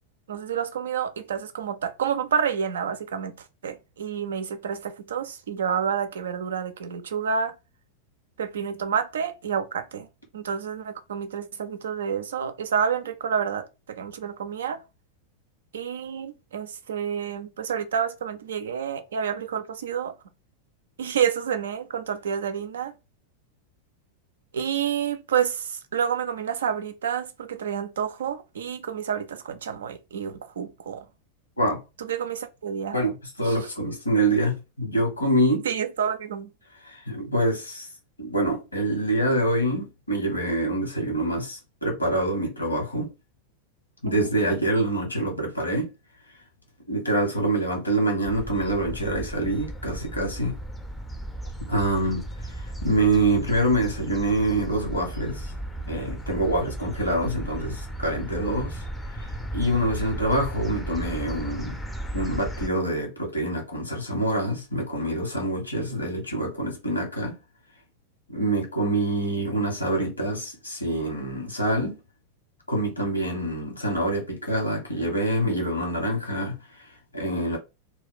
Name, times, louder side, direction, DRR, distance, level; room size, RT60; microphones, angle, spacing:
voice 1, 0.3-3.3 3.6-7.5 8.4-10.1 10.3-14.8 15.7-20.1 21.0-22.9 24.5-31.0 32.0-33.0 33.5-33.6 35.7-36.5 44.1-44.3, right 7 dB, 65° right, 0.4 m, -29 dB
voice 2, 32.9-35.6 36.8-37.9 38.2-43.1 44.0-45.9 46.9-50.6 51.7-55.5 55.9-58.9 59.2-61.8 62.1-67.4 68.3-72.0 72.7-77.6, right 1 dB, 80° left, 1.1 m, -26 dB
sound 1, 48.2-62.7, right 1 dB, 5° left, 0.5 m, -35 dB
2.3 x 2.2 x 3.7 m
figure-of-eight pair, 90°, 0 cm